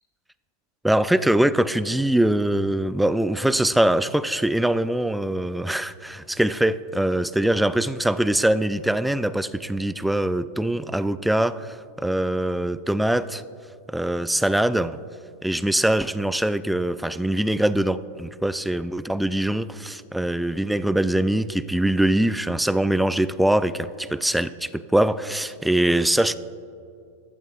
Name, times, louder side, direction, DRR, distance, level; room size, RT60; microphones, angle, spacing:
voice 1, 0.8-13.4 13.9-14.9 15.4-26.4, right 1 dB, 5° right, 0.3 m, -23 dB
15.0 x 12.0 x 2.5 m
figure-of-eight pair, 90°, 0 cm